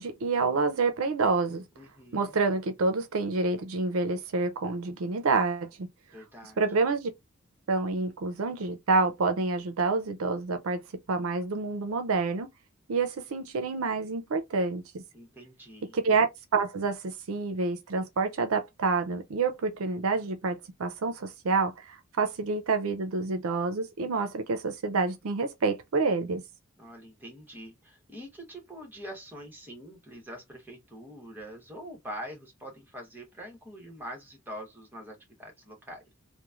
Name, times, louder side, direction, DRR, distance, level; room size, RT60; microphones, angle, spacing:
voice 1, 0.0-1.6 2.1-5.9 6.6-7.1 7.7-10.8 11.1-12.5 12.9-15.0 15.9-16.3 16.5-26.4, right 4 dB, 75° right, 0.5 m, -28 dB
voice 2, 1.8-2.4 6.1-6.6 15.1-15.9 26.8-36.1, equal, 10° right, 1.0 m, -44 dB
3.0 x 2.1 x 2.4 m
head